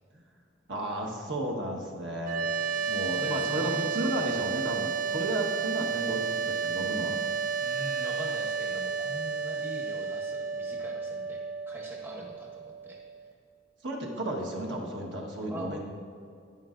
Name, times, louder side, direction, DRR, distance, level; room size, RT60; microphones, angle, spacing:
voice 1, 0.7-2.5 2.9-7.2 13.8-15.8, right 1 dB, 65° right, 0 dB, 1.3 m, -33 dB
sound 1, 2.2-13.3, right 5 dB, 45° right, 0.4 m, -32 dB
voice 2, 2.7-4.3 7.6-11.4 11.7-13.0 15.5-15.8, equal, 10° right, -1 dB, 0.8 m, -43 dB
11.0 x 9.5 x 2.5 m, 2.5 s
head